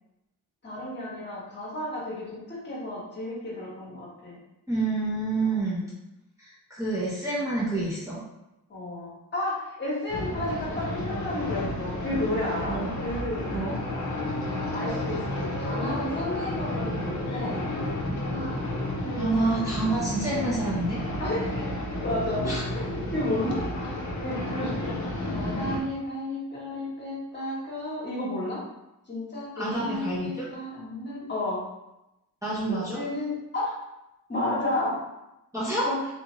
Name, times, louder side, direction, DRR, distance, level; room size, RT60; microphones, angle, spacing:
voice 1, 0.6-4.4 5.4-5.5 8.7-13.5 14.7-17.7 18.2-18.6 19.0-19.3 21.2-21.5 22.0-22.5 22.7-24.9 25.3-28.6 29.1-31.6 32.7-33.7 34.3-35.0 35.8-36.0, left 1 dB, 30° left, -7 dB, 1.3 m, -32 dB
voice 2, 4.7-5.8 6.4-8.2 12.7-12.9 13.5-13.7 19.2-21.0 22.4-22.6 29.6-30.5 32.4-33.0 35.5-35.8, right 2 dB, 10° right, -9 dB, 0.8 m, -28 dB
sound 1, 10.1-25.8, left 1 dB, 50° left, 0.7 m, -31 dB
3.5 x 2.7 x 3.0 m, 0.93 s
wide cardioid pair, 145°, 37 cm